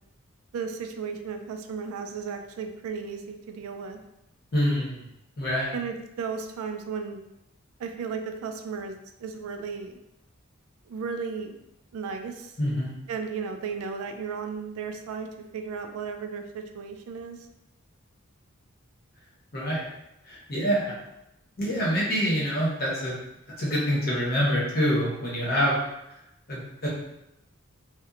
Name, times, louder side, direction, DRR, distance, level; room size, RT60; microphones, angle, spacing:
voice 1, 0.5-4.0 5.7-7.2 7.8-10.0 10.9-11.6 11.9-12.5 13.1-15.3 15.5-17.4, right 5 dB, 85° right, 5 dB, 0.3 m, -34 dB
voice 2, 4.5-5.0 5.4-5.7 12.6-12.9 19.5-19.9 20.3-21.0 21.6-23.2 23.6-25.8 26.5-26.9, equal, 45° left, -5 dB, 0.8 m, -26 dB
2.8 x 2.1 x 2.4 m, 0.85 s
head